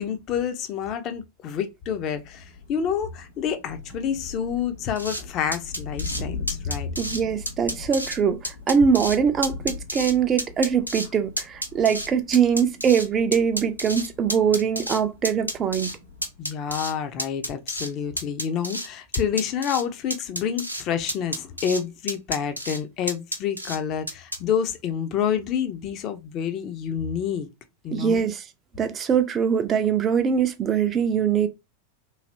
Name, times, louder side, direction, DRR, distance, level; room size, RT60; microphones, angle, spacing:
voice 1, 0.0-6.9 16.4-27.5 27.8-28.2, left 8 dB, 35° left, 0.5 m, -28 dB
Thunder, 2.0-16.5, left 4 dB, 80° left, 1.1 m, -41 dB
sound 1, 5.0-5.2 5.5-6.2 6.5-7.2 7.5-8.2 8.4-9.2 9.4-10.1 10.4-11.1 11.4-13.1 13.3-15.0 15.2-16.0 16.2-16.9 17.2-17.9 18.2-18.9 19.1-19.8 20.1-20.8 21.1-21.8 22.1-22.8 23.1-23.8 24.1-24.4, equal, 90° right, 0.5 m, -30 dB
voice 2, 7.0-15.9 27.9-28.4 28.8-31.5, right 7 dB, 25° right, 0.4 m, -22 dB
3.2 x 2.6 x 2.6 m
figure-of-eight pair, 90°, 0 cm